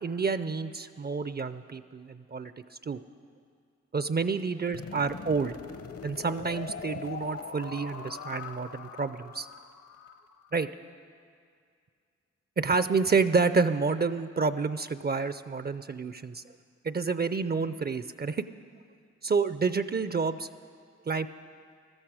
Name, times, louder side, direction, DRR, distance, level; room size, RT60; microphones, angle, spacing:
voice 1, 0.0-3.0 3.9-5.5 6.0-9.5 10.5-10.7 12.6-16.4 16.8-18.4 19.2-20.5 21.1-21.3, right 4 dB, 35° right, 13 dB, 0.5 m, -29 dB
sound 1, 4.7-10.7, left 5 dB, 50° left, 0.9 m, -42 dB
15.0 x 13.0 x 4.9 m, 2.2 s
supercardioid pair, 40°, 30 cm